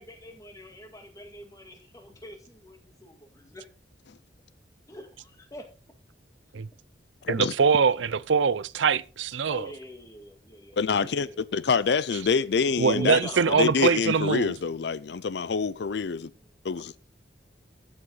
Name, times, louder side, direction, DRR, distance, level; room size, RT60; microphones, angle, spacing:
voice 1, 0.0-3.7 4.9-5.6 9.5-11.7 12.9-13.6 16.3-16.5, left 1 dB, 20° left, 1.9 m, -44 dB
voice 2, 7.3-9.7 12.8-14.5, right 6 dB, 85° right, 0.6 m, -23 dB
voice 3, 10.8-13.2 13.6-16.3 16.6-16.9, left 5 dB, 65° left, 0.4 m, -26 dB
13.5 x 7.9 x 3.9 m
head